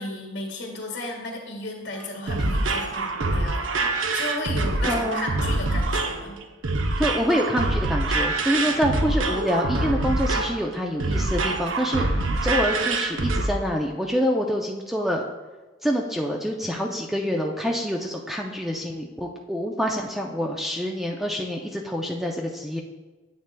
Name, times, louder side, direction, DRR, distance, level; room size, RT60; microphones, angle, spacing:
voice 1, 0.0-6.4 12.1-12.4, left 2 dB, 60° left, 0 dB, 1.7 m, -34 dB
sound 1, 2.0-13.5, right 2 dB, 85° right, 0.7 m, -25 dB
voice 2, 4.8-5.3 7.0-15.2 15.8-22.8, equal, ahead, 0 dB, 0.4 m, -26 dB
9.5 x 8.0 x 2.2 m, 1.2 s
head